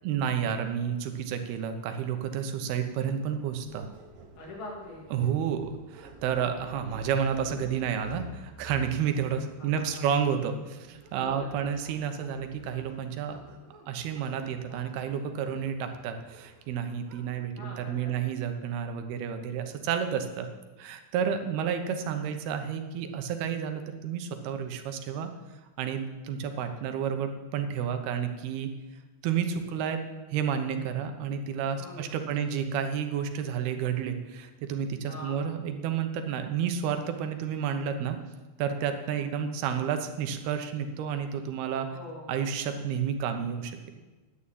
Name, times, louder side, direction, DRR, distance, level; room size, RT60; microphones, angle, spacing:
voice 1, 0.0-3.9 5.1-13.4 13.9-20.5 20.8-25.3 25.8-28.7 29.2-30.0 30.3-38.2 38.6-41.9 42.3-43.8, right 7 dB, 85° right, 7 dB, 3.0 m, -30 dB
sound 1, 2.9-17.3, right 1 dB, 65° right, 3.0 m, -50 dB
voice 2, 4.4-5.1 9.6-10.0 11.2-11.7 17.6-18.1 31.7-32.1 35.1-35.4 41.7-42.3, left 2 dB, 70° left, -2 dB, 4.7 m, -43 dB
10.0 x 9.7 x 8.5 m, 1.2 s
omnidirectional pair, 4.4 m